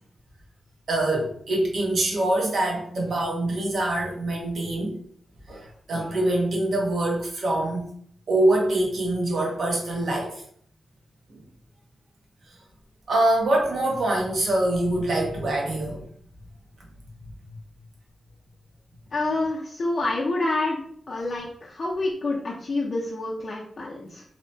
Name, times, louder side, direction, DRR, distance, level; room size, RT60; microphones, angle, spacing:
voice 1, 0.9-5.0 5.5-7.9 8.3-10.3 13.1-16.0, right 1 dB, 65° right, -1 dB, 0.8 m, -24 dB
voice 2, 19.1-20.8 21.1-24.2, left 2 dB, 50° left, -3 dB, 0.4 m, -27 dB
2.7 x 2.1 x 2.7 m, 0.62 s
wide cardioid pair, 100°, 0 cm